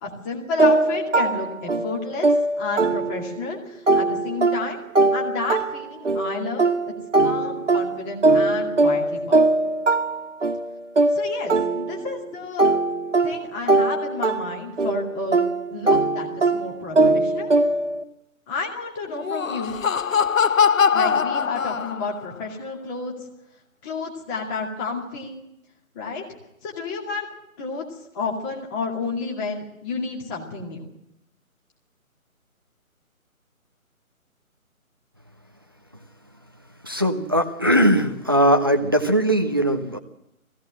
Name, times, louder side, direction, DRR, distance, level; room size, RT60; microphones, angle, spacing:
voice 1, 0.0-4.8 5.1-6.9 7.2-9.4 11.1-12.7 13.2-15.4 15.7-17.5 18.5-19.8 20.9-23.1 23.8-25.4 25.9-26.2 26.6-27.3 27.6-27.8 28.1-30.9, left 4 dB, 15° left, -1 dB, 2.3 m, -31 dB
sound 1, 0.6-3.5 3.9-12.2 12.6-18.0, right 2 dB, 55° right, 1.8 m, -21 dB
Laughter, 19.1-22.3, left 6 dB, 65° left, 0.7 m, -21 dB
voice 2, 36.8-40.0, equal, 15° right, 6 dB, 0.6 m, -20 dB
20.5 x 16.5 x 7.7 m, 0.85 s
figure-of-eight pair, 150°, 43 cm